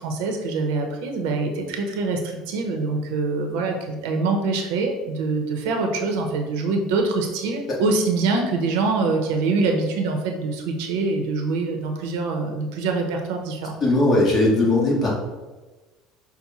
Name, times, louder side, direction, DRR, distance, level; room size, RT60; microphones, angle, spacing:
voice 1, 0.0-13.7, right 3 dB, 80° right, 3 dB, 0.8 m, -24 dB
voice 2, 13.8-15.1, left 2 dB, 30° left, -4 dB, 1.4 m, -19 dB
5.9 x 2.1 x 4.1 m, 1.2 s
cardioid pair, 150°, 0 cm